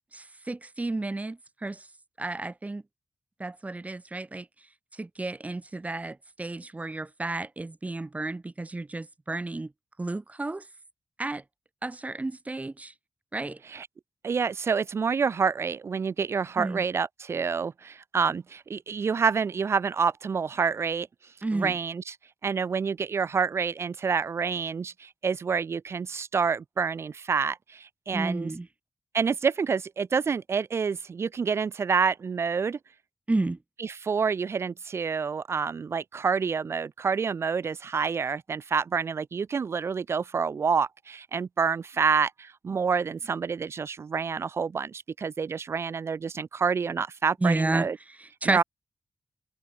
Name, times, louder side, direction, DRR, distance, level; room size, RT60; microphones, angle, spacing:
voice 1, 0.1-1.9 2.2-2.8 3.4-4.5 5.0-9.7 10.0-10.6 11.2-11.4 11.8-12.9 13.3-13.6 16.6-16.8 21.4-21.7 28.1-28.7 33.3-33.6 47.4-47.9 48.2-48.6, right 2 dB, 30° right, 7.7 m, -31 dB
voice 2, 14.2-21.1 21.5-22.2 22.4-28.5 29.1-32.8 33.8-48.0 48.4-48.6, right 5 dB, 70° right, 8.0 m, -28 dB
cardioid pair, 50°, 5 cm